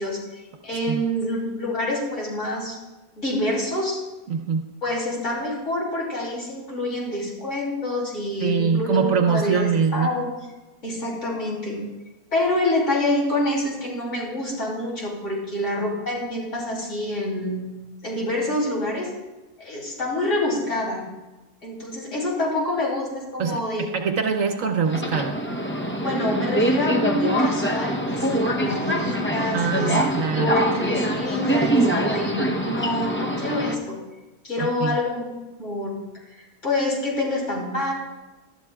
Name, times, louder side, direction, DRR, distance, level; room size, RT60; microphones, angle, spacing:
voice 1, 0.0-2.8 3.2-4.0 4.8-10.3 10.8-11.8 12.3-17.6 18.0-19.1 19.6-21.1 21.6-23.8 26.0-30.0 30.4-34.0 34.4-35.2 35.6-36.0 36.4-37.9, left 1 dB, 55° left, -3 dB, 3.4 m, -26 dB
voice 2, 4.3-4.6 8.4-10.1 23.4-25.4 29.5-30.5 34.6-35.0, right 6 dB, 65° right, 5 dB, 1.2 m, -23 dB
Subway metro underground, 24.8-33.7, right 1 dB, 15° left, 0.4 m, -24 dB
19.5 x 12.0 x 2.3 m, 1.1 s
omnidirectional pair, 1.6 m